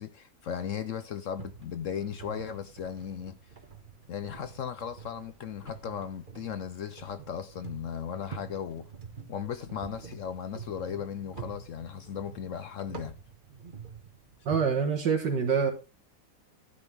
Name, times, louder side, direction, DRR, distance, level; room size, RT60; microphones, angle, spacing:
voice 1, 0.0-3.4 4.1-8.8 9.3-13.1, left 8 dB, 60° left, 0.8 m, -36 dB
sound 1, 1.4-14.6, right 6 dB, 30° right, 1.2 m, -47 dB
voice 2, 14.5-15.7, right 6 dB, 80° right, 2.1 m, -26 dB
11.5 x 9.7 x 3.5 m
omnidirectional pair, 1.9 m